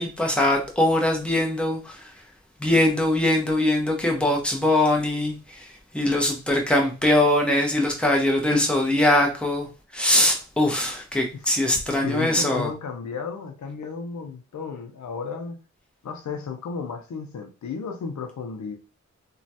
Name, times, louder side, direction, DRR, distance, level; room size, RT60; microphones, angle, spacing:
voice 1, 0.0-2.1 2.6-12.7, left 1 dB, 5° left, 0.9 m, -22 dB
voice 2, 11.9-15.6 16.0-18.8, left 5 dB, 75° left, 0.6 m, -33 dB
3.0 x 2.3 x 2.7 m
cardioid pair, 55°, 29 cm